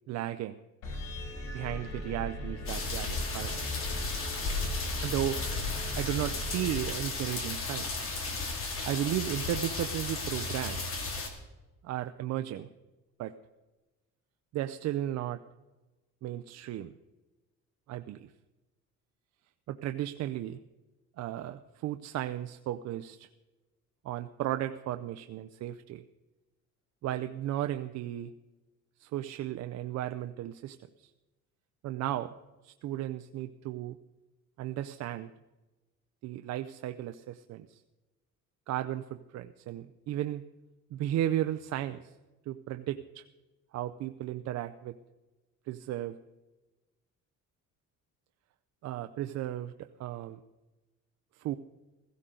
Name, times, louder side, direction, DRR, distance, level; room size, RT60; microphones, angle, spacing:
voice 1, 0.1-0.6 1.5-3.6 5.0-8.1 8.8-11.0 11.8-12.7 13.2-13.3 14.5-15.4 16.2-16.9 17.9-18.3 19.7-20.6 21.2-23.3 24.0-26.0 27.0-28.3 29.0-31.1 31.8-32.3 32.6-34.0 34.6-35.3 36.2-37.8 38.7-40.4 40.9-42.1 42.5-43.2 43.7-45.0 45.7-46.2 48.8-50.4 51.3-51.6, right 12 dB, 60° right, 9 dB, 0.5 m, -35 dB
sound 1, 0.8-7.4, left 1 dB, 90° left, 6.1 m, -38 dB
sound 2, 2.7-11.3, left 3 dB, 45° left, 2.5 m, -35 dB
16.5 x 15.5 x 3.8 m, 1.1 s
cardioid pair, 160°, 31 cm